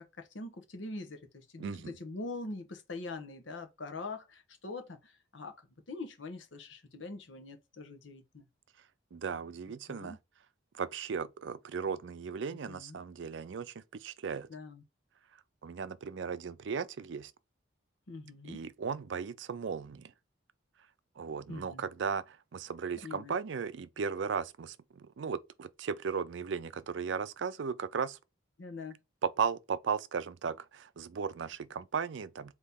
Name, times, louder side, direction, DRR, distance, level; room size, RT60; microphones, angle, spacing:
voice 1, 0.0-8.5 9.9-10.2 12.7-13.0 14.5-14.8 18.1-18.7 21.5-21.8 23.0-23.3 28.6-29.0, left 3 dB, 75° left, 1.0 m, -43 dB
voice 2, 1.6-1.9 9.1-10.2 10.8-14.5 15.6-17.3 18.4-20.1 21.2-28.2 29.2-32.5, right 6 dB, 70° right, 0.4 m, -36 dB
4.1 x 2.9 x 3.6 m
head